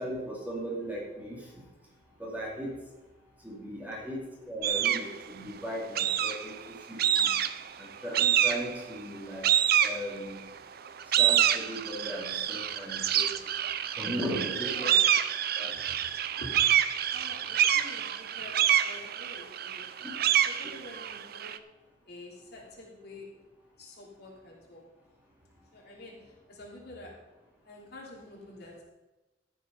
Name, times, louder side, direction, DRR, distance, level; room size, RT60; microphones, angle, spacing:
voice 1, 0.0-1.4 2.2-2.7 3.4-4.2 4.5-7.3 7.8-9.5 9.8-10.4 11.2-13.3 14.0-14.9 15.6-15.7 20.0-20.2, equal, 10° right, -4 dB, 2.8 m, -37 dB
sound 1, 4.6-5.1 6.0-6.6 7.0-7.7 8.1-8.8 9.4-10.4 10.9-21.6, right 10 dB, 55° right, 0.5 m, -27 dB
voice 2, 14.3-15.0 15.8-16.0 16.4-16.6 17.1-19.8 20.2-21.5 22.1-23.3 23.8-24.8 25.7-27.1 27.6-28.8, left 1 dB, 60° left, -2 dB, 2.9 m, -47 dB
13.5 x 6.9 x 5.4 m, 1.1 s
head